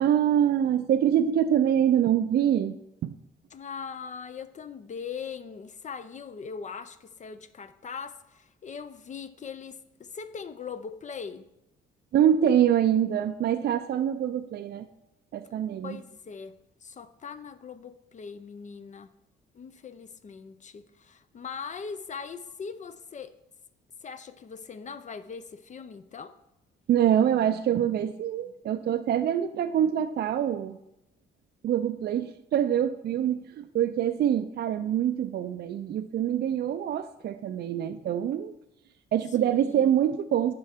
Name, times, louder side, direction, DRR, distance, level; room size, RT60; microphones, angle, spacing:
voice 1, 0.0-2.8 3.0-3.1 12.1-14.9 15.3-16.0 26.9-30.8 31.6-38.5 39.1-40.5, right 10 dB, 55° right, 8 dB, 0.4 m, -25 dB
voice 2, 3.5-11.4 15.8-16.5 16.8-19.1 19.5-23.3 24.0-26.3 39.4-39.9, left 6 dB, 40° left, 12 dB, 0.5 m, -40 dB
11.0 x 4.4 x 3.5 m, 0.85 s
cardioid pair, 90°, 20 cm